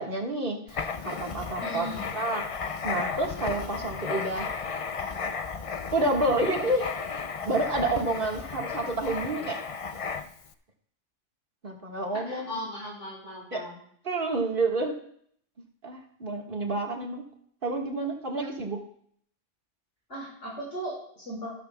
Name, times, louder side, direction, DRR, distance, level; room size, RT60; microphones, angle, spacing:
voice 1, 0.0-2.4 2.8-4.5 5.9-6.9 7.4-9.6 11.6-12.5 13.5-13.6 14.0-15.0 15.8-17.2 17.6-18.8, right 2 dB, 45° right, 0 dB, 1.9 m, -29 dB
Writing, 0.7-10.5, left 5 dB, 45° left, 0.4 m, -34 dB
voice 2, 1.6-2.1 12.2-13.8 18.4-18.5 20.1-21.5, equal, 80° left, -5 dB, 5.8 m, -37 dB
14.5 x 12.5 x 2.3 m, 0.64 s
omnidirectional pair, 1.2 m